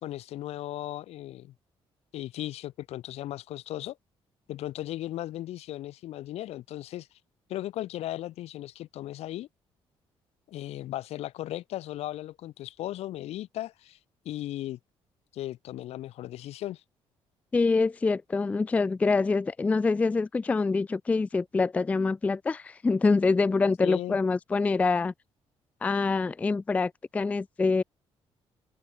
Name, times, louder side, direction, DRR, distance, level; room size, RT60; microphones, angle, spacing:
voice 1, 0.0-1.5 2.1-4.0 4.5-7.1 7.5-9.5 10.5-14.0 14.3-14.8 15.3-16.8 23.8-24.2, left 14 dB, 85° left, 5.1 m, -36 dB
voice 2, 17.5-25.1 25.8-27.8, left 4 dB, 15° left, 0.3 m, -25 dB
open air
cardioid pair, 170°, 10 cm